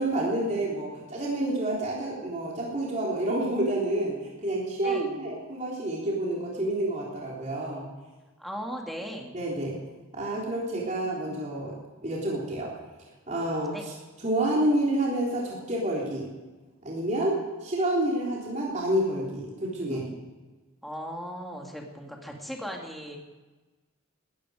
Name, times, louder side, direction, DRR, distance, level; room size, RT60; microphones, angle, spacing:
voice 1, 0.0-4.2 4.4-7.9 9.3-9.8 10.1-11.8 12.0-12.7 13.3-13.9 14.2-16.3 16.8-20.0, right 1 dB, 35° right, -4 dB, 3.7 m, -28 dB
voice 2, 4.8-5.1 8.4-9.3 13.7-13.8 19.9-20.2 20.8-23.2, equal, ahead, 0 dB, 2.4 m, -37 dB
19.0 x 14.5 x 5.0 m, 1.2 s
head